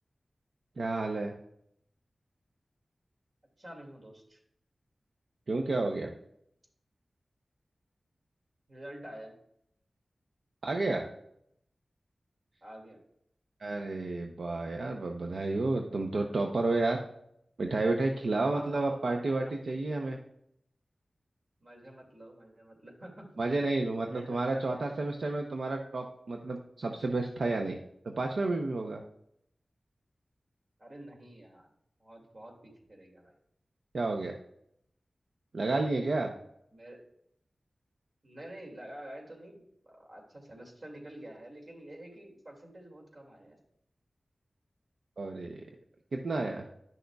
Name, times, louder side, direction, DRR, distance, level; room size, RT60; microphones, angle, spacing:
voice 1, 0.8-1.3 5.5-6.1 10.6-11.1 13.6-17.0 17.6-20.2 23.4-27.8 28.2-29.0 33.9-34.3 35.5-36.3 45.2-45.6 46.1-46.6, right 2 dB, 80° right, 3 dB, 0.6 m, -31 dB
voice 2, 3.6-4.4 8.7-9.3 12.6-13.0 18.5-19.1 21.6-23.6 24.0-25.0 30.8-31.7 32.0-33.3 36.7-37.0 38.2-39.6 39.8-43.6, right 1 dB, 55° right, 0 dB, 2.2 m, -48 dB
10.5 x 6.4 x 2.3 m, 0.74 s
wide cardioid pair, 65°, 0 cm